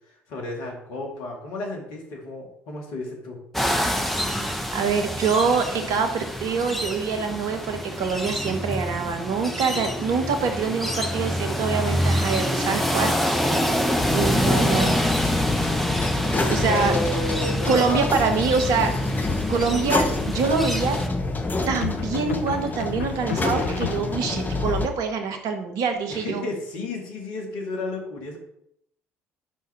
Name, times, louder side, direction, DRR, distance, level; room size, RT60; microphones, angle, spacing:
voice 1, 0.3-3.4 13.4-13.9 16.7-18.1 26.1-28.4, left 2 dB, 70° left, 1 dB, 2.1 m, -32 dB
sound 1, 3.5-21.1, equal, 5° left, 1.3 m, -27 dB
voice 2, 4.7-13.1 14.1-15.0 16.5-16.9 17.7-18.9 19.5-21.0 21.7-26.4, right 5 dB, 65° right, 6 dB, 1.3 m, -25 dB
sound 2, 14.0-24.9, left 3 dB, 25° left, 1.1 m, -26 dB
sound 3, 21.8-24.5, left 10 dB, 85° left, 0.4 m, -34 dB
10.0 x 5.8 x 3.6 m, 0.74 s
figure-of-eight pair, 50°, 7 cm